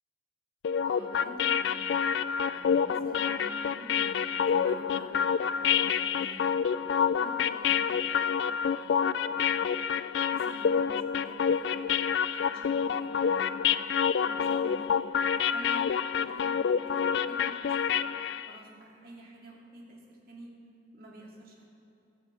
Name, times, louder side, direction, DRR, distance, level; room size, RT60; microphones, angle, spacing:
sound 1, 0.6-18.5, left 7 dB, 80° left, 0.3 m, -28 dB
voice 1, 0.8-2.0 2.5-6.4 7.0-9.7 10.2-13.8 14.2-15.1 15.5-18.1 18.5-20.5 20.9-21.6, right 1 dB, 55° right, -2 dB, 2.3 m, -50 dB
15.0 x 14.0 x 3.3 m, 2.7 s
head